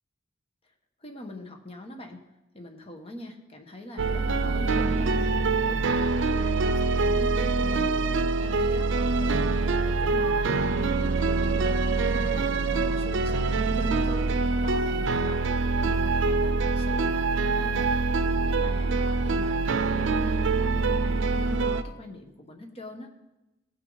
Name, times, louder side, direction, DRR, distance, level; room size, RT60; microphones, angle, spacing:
voice 1, 1.0-2.2 2.5-5.3 5.6-8.0 8.4-15.4 15.8-18.0 18.4-23.1, left 1 dB, 30° left, 4 dB, 1.2 m, -42 dB
sound 1, 4.0-21.8, right 3 dB, 75° right, 0.5 m, -25 dB
17.0 x 6.3 x 4.0 m, 0.99 s
head